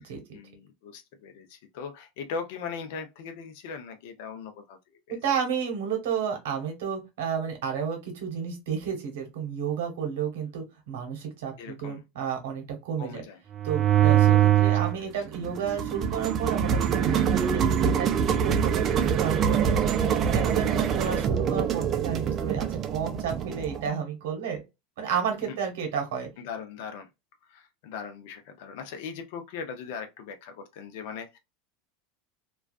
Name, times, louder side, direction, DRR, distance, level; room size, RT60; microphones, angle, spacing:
voice 1, 0.0-4.8 5.1-5.2 11.6-12.0 13.0-13.4 14.1-14.4 14.7-15.0 25.5-25.6 26.4-27.1 27.5-31.4, left 6 dB, 70° left, 0.6 m, -39 dB
voice 2, 5.1-13.2 13.6-19.8 20.1-24.6 25.0-26.3, right 7 dB, 80° right, 1.0 m, -32 dB
sound 1, 13.5-15.0 15.3-23.9, right 9 dB, 35° right, 0.4 m, -24 dB
2.3 x 2.3 x 2.3 m
supercardioid pair, 125°, 0 cm